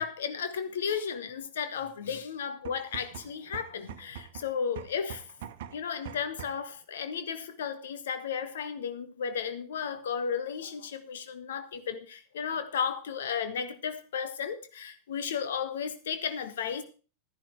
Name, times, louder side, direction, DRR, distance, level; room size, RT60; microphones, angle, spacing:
voice 1, 0.0-5.2 5.7-16.8, left 7 dB, 60° left, 1.4 m, -34 dB
sound 1, 2.5-6.7, right 9 dB, 55° right, 1.0 m, -44 dB
12.5 x 10.5 x 4.6 m
figure-of-eight pair, 90°, 0 cm